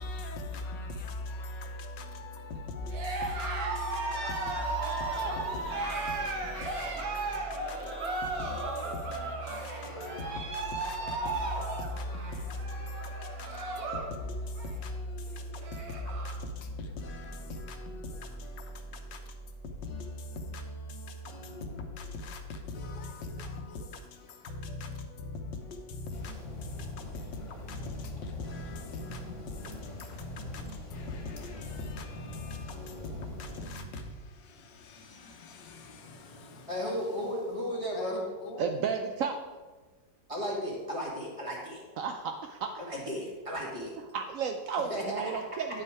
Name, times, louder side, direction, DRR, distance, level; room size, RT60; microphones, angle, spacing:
voice 1, 0.0-37.5 37.9-38.6, left 2 dB, 75° left, 1.6 m, -40 dB
Cheering, 2.9-14.1 14.4-14.9 15.3-15.4 15.6-16.4, right 3 dB, 55° right, 1.5 m, -35 dB
sound 1, 26.1-33.7, left 2 dB, 45° left, 1.8 m, -44 dB
voice 2, 36.7-38.2 40.3-41.8 42.9-43.9 44.9-45.4, equal, 15° right, 1.9 m, -34 dB
voice 3, 38.6-39.4 42.0-42.4 42.6-42.7 44.1-45.8, right 6 dB, 80° right, 0.7 m, -32 dB
9.8 x 5.7 x 4.7 m
omnidirectional pair, 2.0 m